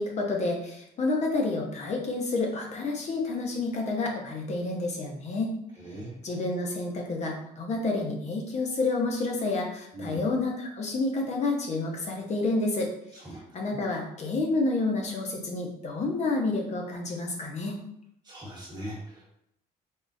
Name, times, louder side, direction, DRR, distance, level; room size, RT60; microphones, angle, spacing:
voice 1, 0.0-5.5 6.2-12.9 13.5-17.8, left 3 dB, 40° left, 1 dB, 0.8 m, -29 dB
voice 2, 5.8-6.2 9.9-10.2 13.2-13.4 18.2-19.2, right 1 dB, 25° right, -4 dB, 1.3 m, -40 dB
3.6 x 2.4 x 2.6 m, 0.75 s
cardioid pair, 110°, 17 cm